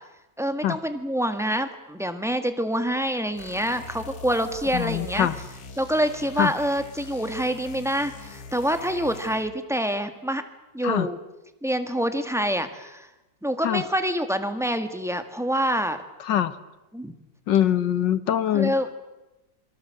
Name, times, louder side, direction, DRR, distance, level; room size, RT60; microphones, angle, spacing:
voice 1, 0.4-5.3 5.8-10.4 10.7-11.2 11.6-13.1 13.4-16.0 16.9-17.2 18.5-18.9, equal, ahead, 8 dB, 1.6 m, -26 dB
sound 1, 3.4-9.6, left 4 dB, 55° left, 1.9 m, -42 dB
voice 2, 4.7-5.4 6.4-6.5 10.8-11.1 13.6-13.8 16.3-16.5 17.5-18.7, left 11 dB, 75° left, 14 dB, 1.8 m, -23 dB
27.5 x 23.0 x 7.7 m, 1.0 s
omnidirectional pair, 2.0 m